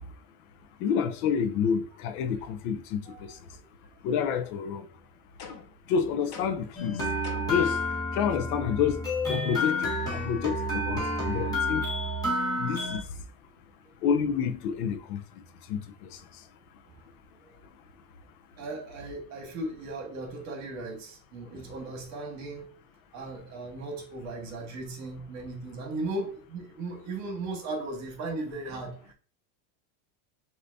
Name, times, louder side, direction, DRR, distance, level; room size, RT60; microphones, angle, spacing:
voice 1, 0.8-3.0 4.0-4.8 5.9-7.0 7.5-7.8 8.1-11.8 12.6-13.0 14.0-15.2 15.7-15.8, left 7 dB, 75° left, 0.7 m, -28 dB
voice 2, 3.1-3.4 7.4-7.5 12.3-12.5 16.9-17.0 17.4-17.5 18.6-22.7 23.1-29.1, right 2 dB, 40° right, 1.7 m, -37 dB
sound 1, 5.4-5.8 6.3-6.8 7.2-7.7, left 6 dB, 40° left, 0.7 m, -44 dB
sound 2, 6.7-13.0, left 1 dB, 10° left, 1.4 m, -30 dB
6.7 x 2.8 x 2.7 m
cardioid pair, 160°, 44 cm